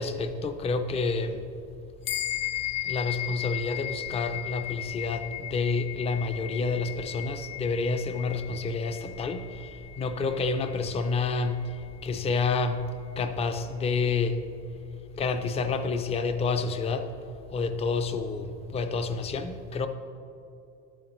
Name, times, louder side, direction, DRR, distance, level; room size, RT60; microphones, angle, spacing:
voice 1, 0.0-1.4 2.8-11.8 12.0-12.8 13.2-14.4 15.1-17.1 17.5-19.9, left 4 dB, 20° left, 9 dB, 0.3 m, -29 dB
sound 1, 2.0-11.8, left 13 dB, 70° left, 0.8 m, -36 dB
12.0 x 9.2 x 3.0 m, 2.7 s
cardioid pair, 150°, 36 cm